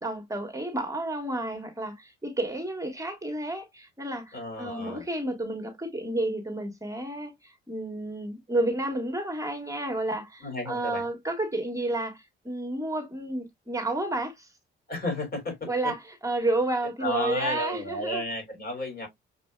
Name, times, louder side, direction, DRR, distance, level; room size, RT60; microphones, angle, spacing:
voice 1, 0.0-14.5 15.7-18.2, right 2 dB, 15° right, 1.5 m, -31 dB
voice 2, 4.3-5.0 10.4-11.0 14.9-15.9 17.0-19.1, left 1 dB, 45° left, 3.3 m, -33 dB
6.4 x 2.6 x 2.3 m
cardioid pair, 90°, 20 cm